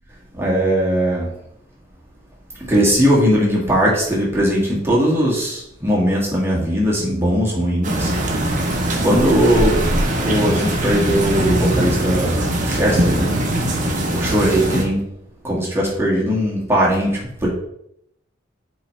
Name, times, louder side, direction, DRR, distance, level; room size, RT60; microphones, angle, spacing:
voice 1, 0.3-1.3 2.6-8.1 9.0-9.8 10.2-13.3 14.1-15.1 15.4-17.5, equal, 15° right, -5 dB, 1.9 m, -19 dB
sound 1, 7.8-14.8, right 1 dB, 40° right, 1.1 m, -21 dB
8.2 x 3.9 x 3.3 m, 0.76 s
head